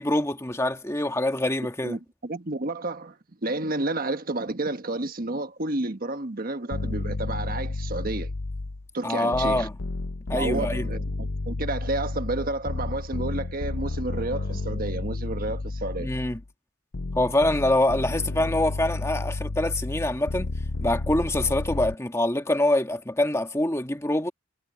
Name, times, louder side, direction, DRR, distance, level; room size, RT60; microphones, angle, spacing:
voice 1, 0.0-2.0 9.0-9.7 10.3-10.9 16.0-16.4 17.1-20.5 20.8-24.3, left 1 dB, 15° left, 1.6 m, -25 dB
voice 2, 1.8-3.2 3.4-8.3 8.9-9.7 10.3-16.1, right 2 dB, 45° right, 1.4 m, -31 dB
sound 1, 6.7-8.9 9.3-16.4 16.9-21.9, left 2 dB, 70° left, 0.8 m, -31 dB
head